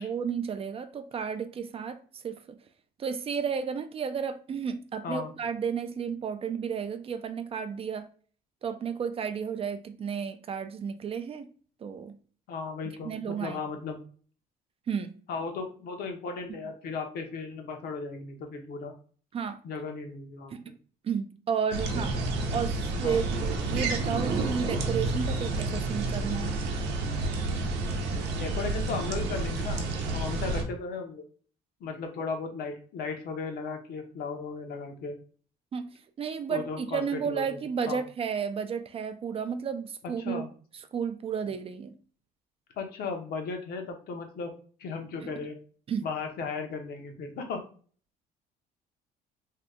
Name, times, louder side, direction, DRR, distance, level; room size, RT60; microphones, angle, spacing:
voice 1, 0.0-2.4 3.0-8.1 8.6-11.5 11.8-12.2 13.0-13.6 14.9-15.2 19.3-19.6 20.5-20.6 21.0-22.2 22.5-26.6 35.7-40.5 40.9-41.9 45.9-46.1, right 6 dB, 35° right, 0.4 m, -32 dB
voice 2, 12.5-14.0 15.3-18.9 19.6-20.5 22.1-22.3 23.0-23.2 28.4-29.9 30.1-31.2 31.8-35.1 36.5-37.6 37.9-38.0 40.2-40.5 42.8-44.5 44.8-45.6 46.0-47.6, left 4 dB, 65° left, 0.8 m, -36 dB
sound 1, 21.7-30.6, right 2 dB, 85° right, 0.7 m, -30 dB
2.7 x 2.2 x 3.5 m
cardioid pair, 110°, 17 cm